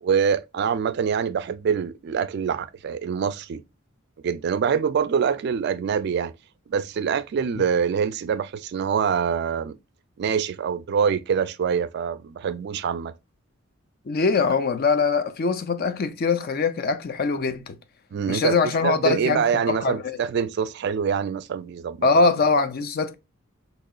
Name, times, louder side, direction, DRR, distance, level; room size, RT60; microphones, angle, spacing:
voice 1, 0.0-3.6 4.2-6.3 6.7-9.8 10.2-13.1 18.1-18.6 18.8-22.1, right 7 dB, 55° right, 0.3 m, -25 dB
voice 2, 14.1-17.8 18.3-20.0 22.0-23.1, left 4 dB, 50° left, 0.4 m, -22 dB
3.9 x 2.9 x 2.2 m
head